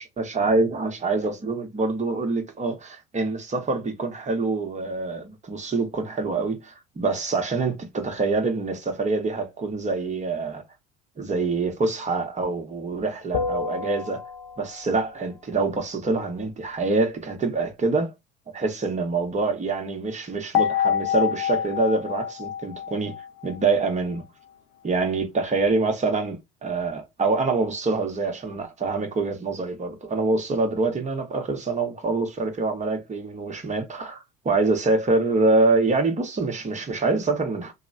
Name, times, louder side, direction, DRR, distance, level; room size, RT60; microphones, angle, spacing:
voice 1, 0.0-10.6 11.2-14.2 14.6-18.1 18.5-23.1 23.4-24.2 24.8-37.7, right 3 dB, 25° right, 1.1 m, -25 dB
sound 1, 13.3-14.9 20.5-23.9, left 8 dB, 65° left, 0.5 m, -27 dB
2.9 x 2.1 x 2.5 m
hypercardioid pair, 65°, 30 cm